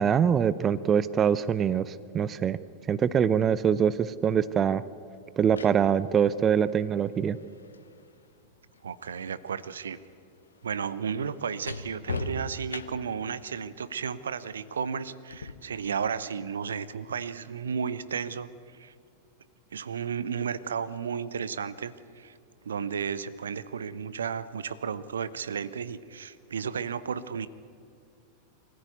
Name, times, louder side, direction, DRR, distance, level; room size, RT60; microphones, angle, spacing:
voice 1, 0.0-2.6 2.9-4.8 5.4-7.4, right 8 dB, 25° right, 17 dB, 0.6 m, -24 dB
sound 1, 3.9-4.1 5.2-9.2 9.5-13.3 15.3-15.5, left 3 dB, 75° left, 1.1 m, -41 dB
voice 2, 8.8-10.0 10.6-18.9 19.7-22.3 22.6-27.5, right 6 dB, 70° right, 16 dB, 0.7 m, -33 dB
23.5 x 15.0 x 9.4 m, 2.4 s
figure-of-eight pair, 90°, 0 cm